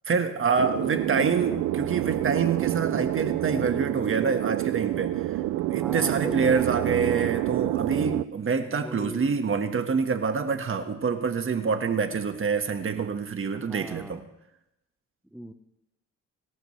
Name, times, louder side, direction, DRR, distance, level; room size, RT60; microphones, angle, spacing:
voice 1, 0.1-5.2 5.7-14.2, right 5 dB, 45° right, 7 dB, 1.6 m, -26 dB
sound 1, 0.6-8.2, right 15 dB, 85° right, 0.5 m, -28 dB
voice 2, 0.9-1.6 5.7-6.6 8.6-9.4 13.5-14.2 15.3-15.5, right 1 dB, ahead, 7 dB, 1.0 m, -40 dB
26.5 x 13.0 x 3.3 m, 0.87 s
cardioid pair, 90°, 30 cm